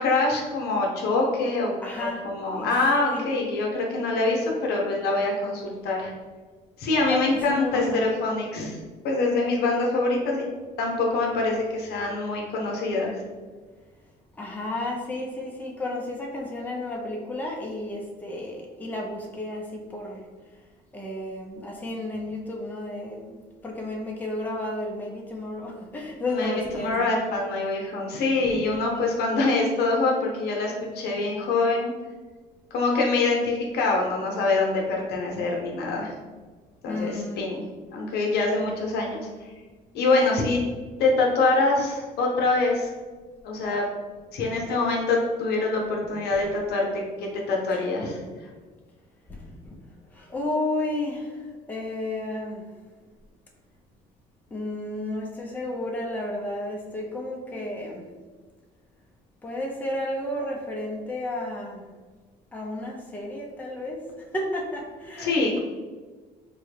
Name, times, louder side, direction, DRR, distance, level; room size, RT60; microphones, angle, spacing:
voice 1, 0.0-1.7 2.0-6.1 6.8-8.8 9.0-10.4 10.8-13.2 26.3-31.9 32.7-36.1 36.8-37.6 37.9-39.5 39.9-40.6 41.0-42.9 43.4-43.8 44.3-48.2 65.2-65.6, left 3 dB, 75° left, 0 dB, 0.8 m, -25 dB
voice 2, 1.8-2.2 2.5-2.7 3.1-3.3 7.1-8.1 14.4-20.2 20.9-27.1 28.4-28.5 36.9-37.5 38.6-38.7 47.7-47.8 49.3-49.5 50.1-51.4 51.7-52.7 54.5-58.0 59.4-61.8 62.5-64.0 64.3-65.6, left 1 dB, 10° left, -1 dB, 0.6 m, -32 dB
3.6 x 2.1 x 3.3 m, 1.4 s
cardioid pair, 110°, 17 cm